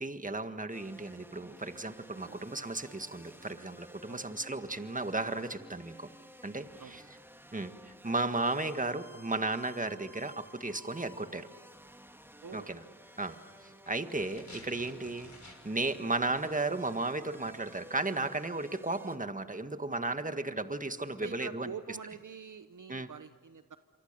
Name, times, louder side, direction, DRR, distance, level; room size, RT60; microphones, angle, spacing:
voice 1, 0.0-6.1 6.4-7.0 7.5-7.7 8.0-11.5 12.5-12.8 13.2-13.4 13.6-21.7 22.9-23.1, right 2 dB, 20° right, 9 dB, 1.7 m, -34 dB
sound 1, 0.7-19.2, equal, 5° right, 1.7 m, -54 dB
voice 2, 12.4-12.7 13.7-13.8 21.1-23.8, right 6 dB, 55° right, 11 dB, 1.0 m, -46 dB
sound 2, 13.0-16.2, left 3 dB, 50° left, 6.1 m, -54 dB
27.5 x 24.5 x 6.9 m, 1.5 s
cardioid pair, 40°, 36 cm